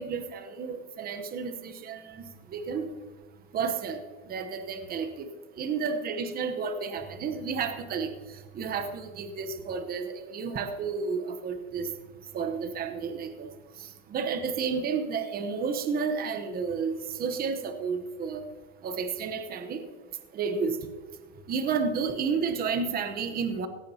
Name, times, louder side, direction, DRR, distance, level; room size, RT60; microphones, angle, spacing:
voice 1, 0.0-2.2 2.5-2.9 3.5-4.0 4.3-5.3 5.6-8.1 8.5-11.9 12.3-13.5 14.1-18.4 18.8-19.8 20.3-20.8 21.5-23.7, right 5 dB, 20° right, 8 dB, 0.9 m, -31 dB
17.5 x 15.0 x 2.8 m, 1.5 s
supercardioid pair, 140°, 45 cm